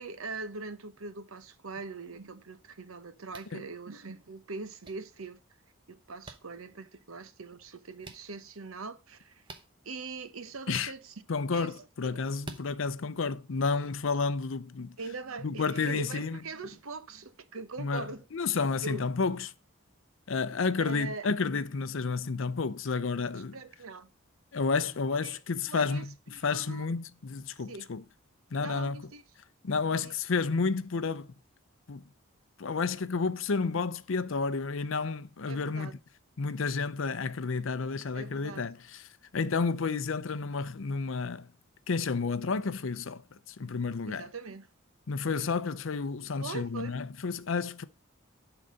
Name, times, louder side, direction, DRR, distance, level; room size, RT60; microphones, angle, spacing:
voice 1, 0.0-5.4 5.9-9.4 9.8-11.1 11.5-11.8 12.1-12.2 15.0-18.2 18.8-19.1 20.8-21.3 23.5-24.1 25.1-25.4 25.7-26.9 27.7-27.9 28.6-29.2 30.0-30.1 35.5-35.9 38.1-38.7 44.1-44.7 46.4-47.0, right 3 dB, 80° right, 0.9 m, -42 dB
sound 1, 3.3-3.5 4.8-4.9 6.2-6.4 8.0-8.2 9.4-9.7 10.7-10.9 12.4-12.7, right 2 dB, 25° right, 0.8 m, -45 dB
voice 2, 11.3-15.0 15.4-16.4 17.8-19.5 20.3-23.6 24.5-28.0 28.5-29.1 29.6-31.3 31.9-32.0 32.6-35.9 36.4-39.1 39.3-41.5 41.9-43.2 43.5-44.3 45.1-47.8, left 4 dB, 65° left, 0.6 m, -31 dB
11.0 x 4.0 x 5.3 m
head